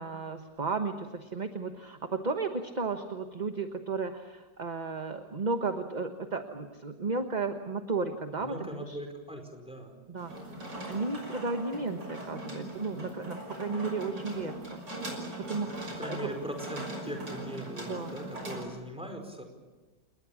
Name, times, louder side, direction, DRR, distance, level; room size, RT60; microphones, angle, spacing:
voice 1, 0.0-9.0 10.1-10.4 10.9-14.8 15.5-15.9 16.2-16.3 17.9-18.2, right 4 dB, 30° right, 6 dB, 1.2 m, -34 dB
voice 2, 8.4-9.9 15.9-19.4, equal, 5° right, 4 dB, 4.8 m, -40 dB
sound 1, 10.2-18.6, right 1 dB, 80° right, 6.7 m, -40 dB
29.5 x 20.0 x 7.3 m, 1.3 s
omnidirectional pair, 1.9 m